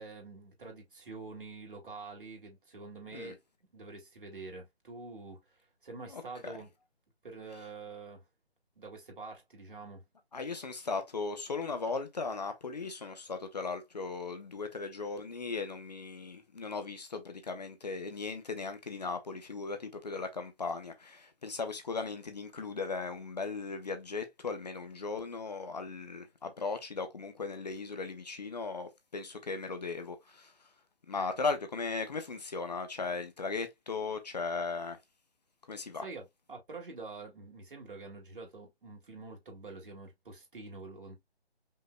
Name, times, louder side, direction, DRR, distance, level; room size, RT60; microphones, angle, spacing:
voice 1, 0.0-3.4 3.7-6.7 7.2-8.2 8.8-10.0 36.0-41.2, right 3 dB, 55° right, 2.4 m, -46 dB
voice 2, 6.1-6.6 10.3-30.5 31.1-35.0 35.7-36.0, left 4 dB, 40° left, 0.8 m, -37 dB
5.4 x 3.8 x 2.2 m
figure-of-eight pair, 155°, 32 cm